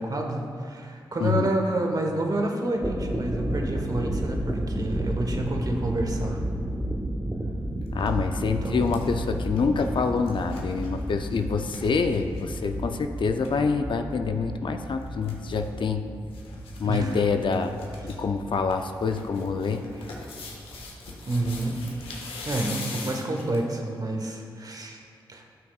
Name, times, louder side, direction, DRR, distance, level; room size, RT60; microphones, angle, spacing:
voice 1, 0.0-6.4 8.6-8.9 16.8-17.2 21.3-21.8 22.4-25.0 25.3-25.4, right 2 dB, 45° right, 2 dB, 1.2 m, -29 dB
voice 2, 1.2-1.5 7.9-16.0 16.8-19.8, left 5 dB, 60° left, 6 dB, 0.5 m, -26 dB
sound 1, 2.7-22.3, right 1 dB, 15° right, 1.1 m, -33 dB
sound 2, 7.8-8.1 8.5-12.7 13.0-13.1 13.3-13.5 14.8-15.7 16.3-16.8 17.1-17.2 17.5-18.1 18.5-23.7 24.2-24.3, left 3 dB, 90° left, 1.0 m, -41 dB
12.5 x 6.0 x 2.4 m, 2.2 s
supercardioid pair, 45°, 9 cm